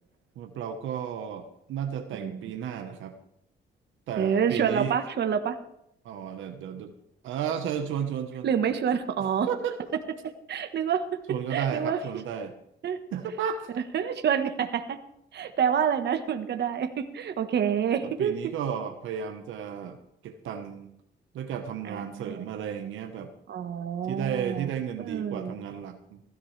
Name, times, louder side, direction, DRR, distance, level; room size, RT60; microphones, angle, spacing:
voice 1, 0.4-3.1 4.1-5.0 6.0-6.9 7.2-8.5 9.2-9.8 11.3-12.5 13.1-13.7 18.0-20.0 20.2-20.9 21.3-23.3 24.1-26.2, right 8 dB, 85° right, 6 dB, 1.2 m, -33 dB
voice 2, 4.2-5.6 8.4-9.5 10.5-11.0 11.5-12.0 12.8-13.0 13.7-15.0 15.3-18.3 21.9-22.4 23.5-24.7 25.0-25.5, right 8 dB, 60° right, 7 dB, 1.3 m, -27 dB
16.0 x 13.0 x 3.3 m, 0.76 s
cardioid pair, 90°, 20 cm